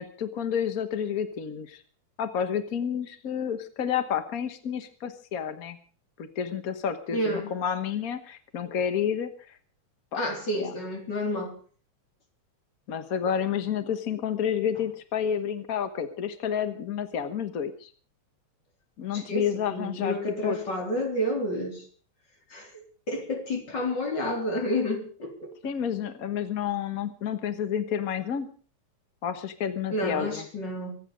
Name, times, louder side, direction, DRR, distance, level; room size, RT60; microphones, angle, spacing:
voice 1, 0.0-1.8 2.2-5.8 6.2-9.6 10.1-10.2 10.5-10.7 12.9-17.9 19.0-20.2 20.4-20.6 25.6-28.5 29.2-30.4, left 8 dB, 70° left, 0.8 m, -30 dB
voice 2, 7.1-7.5 10.1-11.6 19.1-21.9 22.5-25.5 29.9-30.9, left 1 dB, 35° left, 4.2 m, -30 dB
25.0 x 10.0 x 5.1 m
omnidirectional pair, 3.5 m